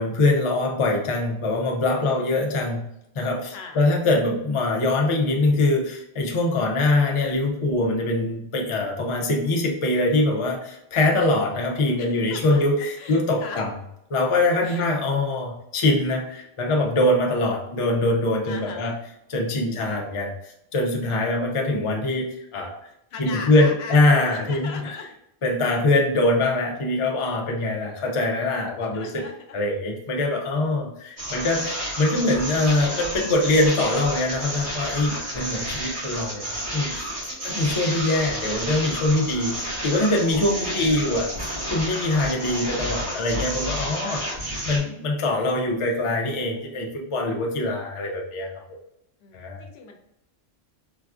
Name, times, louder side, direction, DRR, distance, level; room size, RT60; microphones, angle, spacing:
voice 1, 0.0-2.9 3.2-13.7 14.1-19.0 19.3-22.8 23.2-25.0 25.4-29.2 29.5-37.1 37.4-44.2 44.6-48.5 49.3-49.6, left 2 dB, 40° left, 0 dB, 0.5 m, -23 dB
voice 2, 3.5-3.9 12.0-12.6 13.0-13.6 14.6-14.9 18.4-19.0 23.1-24.0 24.3-25.1 28.9-29.3 37.3-37.7 43.8-44.3 49.2-50.0, left 4 dB, 80° left, 4 dB, 0.8 m, -39 dB
sound 1, 31.2-44.8, equal, 80° right, 1.8 m, -31 dB
4.0 x 2.3 x 2.4 m, 0.81 s
omnidirectional pair, 1.1 m